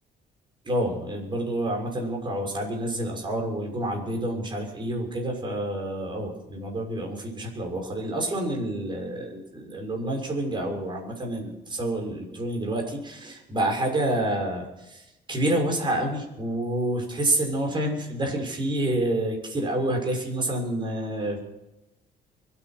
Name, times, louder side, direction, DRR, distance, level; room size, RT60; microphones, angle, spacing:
voice 1, 0.6-21.4, right 1 dB, 30° right, 2 dB, 6.4 m, -28 dB
24.0 x 9.7 x 6.2 m, 0.89 s
cardioid pair, 110°, 17 cm